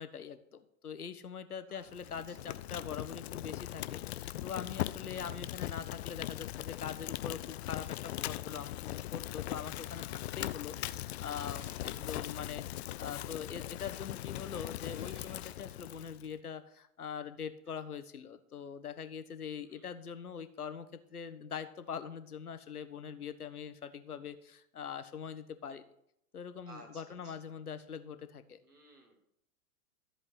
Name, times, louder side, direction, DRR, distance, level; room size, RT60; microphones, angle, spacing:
voice 1, 0.0-25.8 26.3-28.6, left 7 dB, 75° left, 11 dB, 1.4 m, -43 dB
voice 2, 1.7-2.6 8.6-8.7 11.6-11.7 12.1-12.2 19.6-19.8 26.7-27.6 28.6-29.2, right 1 dB, 85° right, 1 dB, 4.3 m, -57 dB
Fire, 1.9-16.3, left 14 dB, 45° left, 0.6 m, -40 dB
sound 1, 11.4-12.6 13.0-13.3 14.4-16.3, right 3 dB, 30° right, 5.6 m, -64 dB
14.0 x 7.8 x 5.9 m, 0.75 s
figure-of-eight pair, 105°, 45 cm